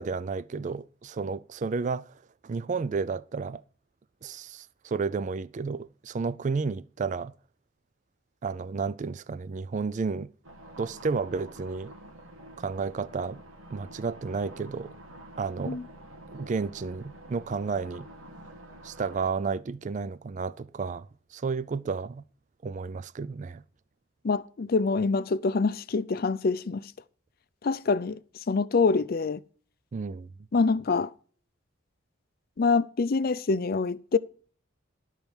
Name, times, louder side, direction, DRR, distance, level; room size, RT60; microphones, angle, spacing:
voice 1, 0.0-2.1 2.4-3.6 4.2-7.3 8.4-10.3 10.8-11.9 12.6-13.4 13.7-14.9 15.4-15.8 16.3-18.1 18.8-21.1 21.3-22.2 22.6-23.6 29.9-30.3, right 4 dB, 35° right, 0.3 m, -32 dB
sound 1, 10.4-19.3, right 1 dB, 90° right, 1.8 m, -48 dB
voice 2, 24.2-26.8 27.6-28.2 28.5-29.4 30.5-31.1 32.6-34.2, left 4 dB, 45° left, 0.5 m, -25 dB
12.0 x 4.6 x 7.1 m
head